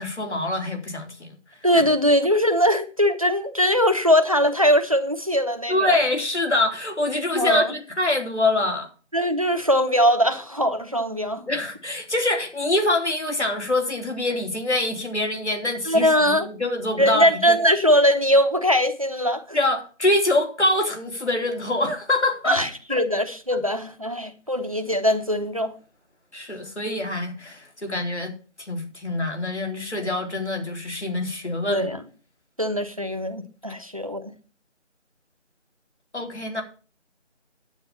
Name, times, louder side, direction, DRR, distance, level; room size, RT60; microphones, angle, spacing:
voice 1, 0.0-1.4 5.7-8.9 11.5-17.6 19.5-23.0 26.3-28.3 28.6-31.9 36.1-36.6, left 2 dB, 65° left, 3.4 m, -25 dB
voice 2, 1.6-6.0 7.3-7.7 9.1-11.5 15.9-16.5 17.0-19.6 22.5-25.7 31.7-32.0 32.6-34.3, equal, 30° right, 0.9 m, -21 dB
10.0 x 8.5 x 5.3 m
figure-of-eight pair, 170°, 37 cm